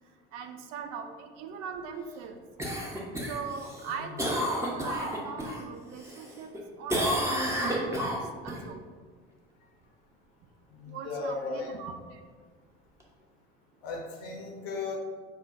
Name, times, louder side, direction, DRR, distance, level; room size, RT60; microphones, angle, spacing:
voice 1, 0.3-2.4 3.3-6.5 6.8-8.8 10.9-12.2, right 6 dB, 55° right, 6 dB, 0.5 m, -41 dB
Cough, 2.6-5.6 6.0-6.6 6.9-8.6 13.0-13.1, equal, 10° right, 0.8 m, -30 dB
voice 2, 10.8-11.7 13.8-15.0, left 3 dB, 60° left, -1 dB, 0.8 m, -36 dB
5.4 x 2.2 x 2.6 m, 1.5 s
figure-of-eight pair, 60°, 30 cm